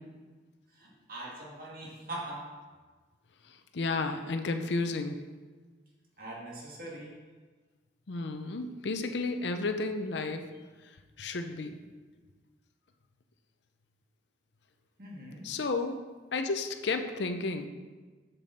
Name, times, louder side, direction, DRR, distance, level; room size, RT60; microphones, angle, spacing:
voice 1, 0.7-2.6 6.2-7.2 12.1-12.2 15.0-15.5, right 1 dB, 50° right, -3 dB, 1.8 m, -42 dB
voice 2, 3.7-5.2 8.1-10.4 11.2-11.8 15.4-16.0 16.3-17.7, left 3 dB, 65° left, 7 dB, 0.6 m, -32 dB
7.1 x 6.9 x 4.2 m, 1.4 s
head